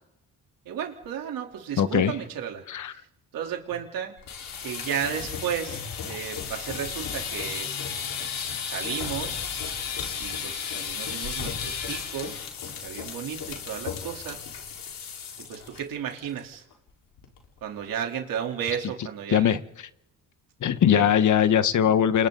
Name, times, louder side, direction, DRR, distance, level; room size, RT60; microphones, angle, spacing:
voice 1, 0.7-2.6 2.9-3.1 3.3-4.1 4.6-7.7 8.3-9.4 10.2-12.4 12.8-14.4 15.5-16.6 17.6-19.6 20.9-21.1, right 8 dB, 85° right, 2 dB, 3.5 m, -33 dB
voice 2, 1.8-2.1 2.7-2.9 19.3-19.6 20.6-22.3, left 9 dB, 60° left, 12 dB, 1.2 m, -20 dB
sound 1, 4.2-15.8 16.1-16.4 16.7-16.8 17.2-17.6, left 6 dB, 80° left, 4.3 m, -34 dB
29.0 x 25.5 x 4.0 m, 0.85 s
cardioid pair, 105°, 33 cm